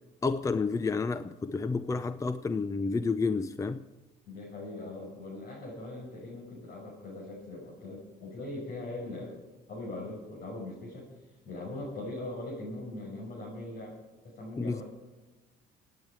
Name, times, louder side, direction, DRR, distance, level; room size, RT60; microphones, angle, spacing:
voice 1, 0.2-3.8 14.6-14.8, left 4 dB, 20° left, 0.5 m, -30 dB
voice 2, 4.2-9.4 9.7-11.1 11.4-14.0 14.2-14.8, left 2 dB, 60° left, 6.3 m, -40 dB
27.0 x 9.4 x 4.8 m
cardioid pair, 110°, 17 cm